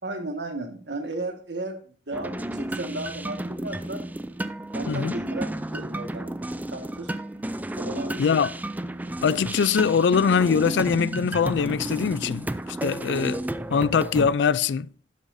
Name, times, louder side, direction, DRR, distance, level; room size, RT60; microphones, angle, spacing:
voice 1, 0.0-4.0 4.7-6.3 6.7-7.1 7.8-8.2, right 2 dB, 80° right, 1.7 m, -34 dB
sound 1, 2.1-14.3, right 1 dB, 10° right, 0.4 m, -32 dB
voice 2, 8.2-8.5 9.2-12.5 12.8-13.4 13.7-14.9, left 6 dB, 80° left, 0.4 m, -22 dB
12.0 x 7.9 x 2.7 m
head